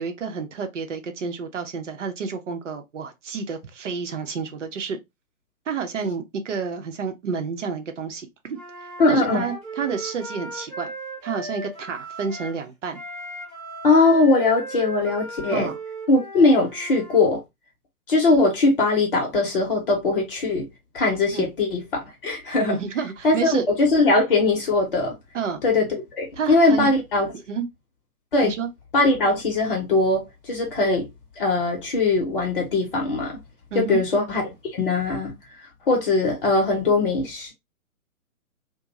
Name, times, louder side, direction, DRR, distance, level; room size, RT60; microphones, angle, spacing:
voice 1, 0.0-5.0 5.7-8.6 9.1-10.9 11.2-13.0 15.5-15.8 21.3-21.5 22.7-23.7 25.3-25.6 26.4-26.9 27.5-27.6 28.4-28.7 33.7-34.0, right 5 dB, 55° right, 0.7 m, -29 dB
Wind instrument woodwind instrument, 8.5-12.6 12.9-17.2, right 1 dB, 10° right, 0.7 m, -37 dB
voice 2, 9.0-9.5 13.8-15.7 16.1-17.4 18.1-20.7 20.9-22.8 23.2-25.1 25.6-25.9 26.2-27.3 28.3-28.5 28.9-31.1 31.4-33.4 33.7-35.4 35.9-37.5, left 3 dB, 40° left, 0.8 m, -20 dB
2.5 x 2.2 x 2.9 m
figure-of-eight pair, 130°, 43 cm